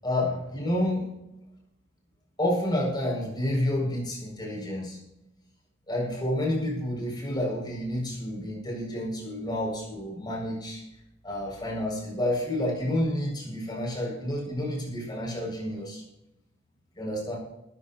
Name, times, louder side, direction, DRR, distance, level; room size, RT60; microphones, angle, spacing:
voice 1, 0.0-1.1 2.4-5.0 5.9-10.8 11.2-16.0 17.0-17.4, left 1 dB, 20° left, -3 dB, 7.8 m, -29 dB
22.0 x 15.0 x 3.2 m, 0.89 s
head